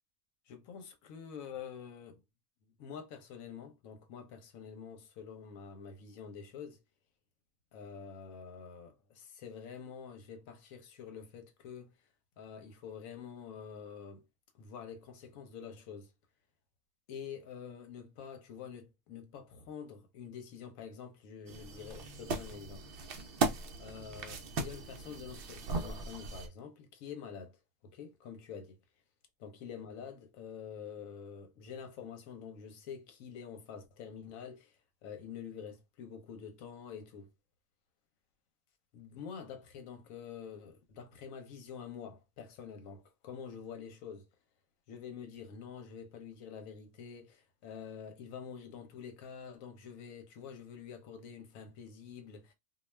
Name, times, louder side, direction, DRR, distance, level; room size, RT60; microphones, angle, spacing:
voice 1, 0.5-2.2 2.8-6.8 7.7-11.9 12.4-14.2 14.5-16.1 17.1-22.9 23.8-27.6 27.8-28.8 29.4-34.7 35.0-37.3 38.9-44.3 44.9-52.5, left 7 dB, 80° left, 1.1 m, -47 dB
sound 1, 21.5-26.5, right 3 dB, 60° right, 0.6 m, -37 dB
2.4 x 2.3 x 3.1 m
omnidirectional pair, 1.4 m